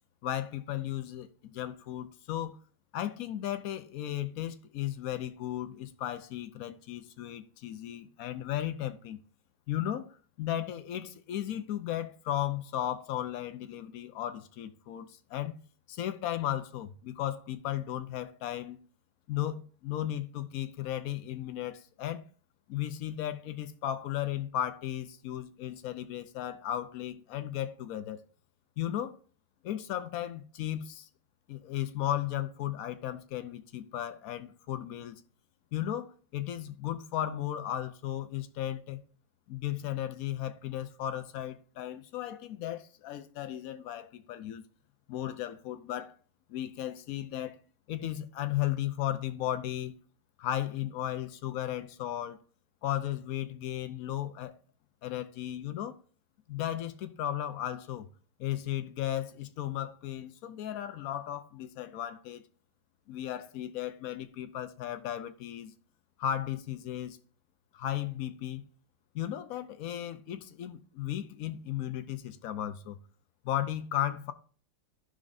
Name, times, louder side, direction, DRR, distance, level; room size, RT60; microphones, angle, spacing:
voice 1, 0.2-2.6 2.9-9.2 9.7-15.6 15.9-18.8 19.3-22.3 22.7-28.2 28.8-29.2 29.6-31.1 31.5-35.2 35.7-39.0 39.5-44.6 45.1-46.2 46.5-47.6 47.9-49.9 50.4-52.4 52.8-54.5 55.0-56.0 56.5-58.1 58.4-62.4 63.1-65.7 66.2-67.2 67.7-68.6 69.1-73.0 73.4-74.3, left 12 dB, 75° left, 0.8 m, -35 dB
14.5 x 5.2 x 2.6 m
omnidirectional pair, 2.2 m